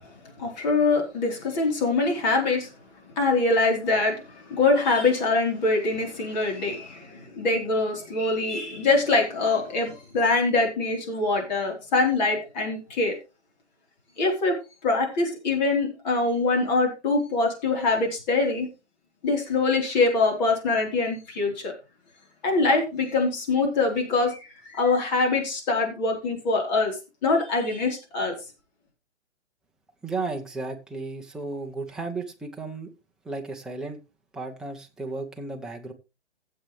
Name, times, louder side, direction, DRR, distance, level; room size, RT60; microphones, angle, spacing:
voice 1, 0.4-2.7 3.2-13.1 14.2-14.6 14.8-18.7 19.2-21.7 22.4-28.3, left 3 dB, 40° left, 4.0 m, -24 dB
voice 2, 30.0-32.9 33.2-34.0 34.3-35.9, right 3 dB, ahead, 0.8 m, -34 dB
15.0 x 7.8 x 3.3 m
hypercardioid pair, 145°, 34 cm